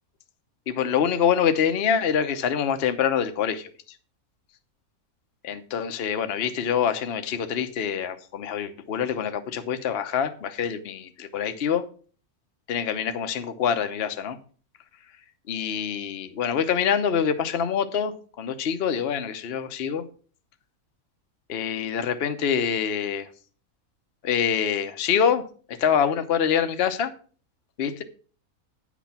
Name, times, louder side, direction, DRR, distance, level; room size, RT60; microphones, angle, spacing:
voice 1, 0.7-3.7 5.5-11.8 12.7-14.4 15.5-20.0 21.5-23.2 24.2-25.4 25.8-27.1 27.8-28.0, left 7 dB, 50° left, 1.0 m, -25 dB
9.3 x 6.1 x 5.8 m
omnidirectional pair, 1.6 m